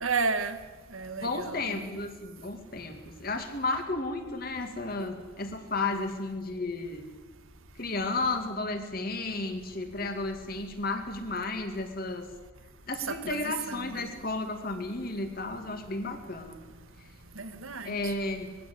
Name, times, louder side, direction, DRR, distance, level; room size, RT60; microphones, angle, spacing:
voice 1, 0.0-0.6 0.9-1.8 13.1-14.1 17.4-18.1, right 4 dB, 85° right, 1.7 m, -32 dB
voice 2, 1.2-7.1 7.8-12.3 12.9-16.6 17.8-18.6, left 2 dB, 45° left, 2.4 m, -33 dB
21.0 x 15.5 x 8.8 m
head